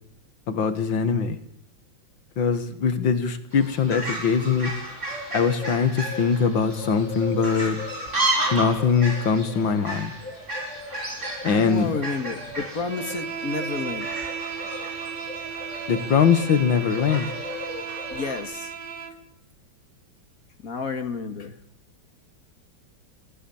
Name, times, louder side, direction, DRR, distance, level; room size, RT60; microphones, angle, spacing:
voice 1, 0.5-1.4 2.4-4.7 5.3-7.8 8.5-10.1 11.4-11.9 15.9-17.3, left 6 dB, 70° left, 11 dB, 2.3 m, -22 dB
Fowl, 3.5-18.4, right 1 dB, 35° right, 6.4 m, -33 dB
voice 2, 11.2-14.1 18.1-18.7 20.6-21.6, left 4 dB, 45° left, 8 dB, 2.2 m, -31 dB
Bowed string instrument, 12.8-19.2, right 6 dB, 65° right, 2.5 m, -35 dB
27.5 x 18.5 x 7.2 m, 0.72 s
omnidirectional pair, 2.2 m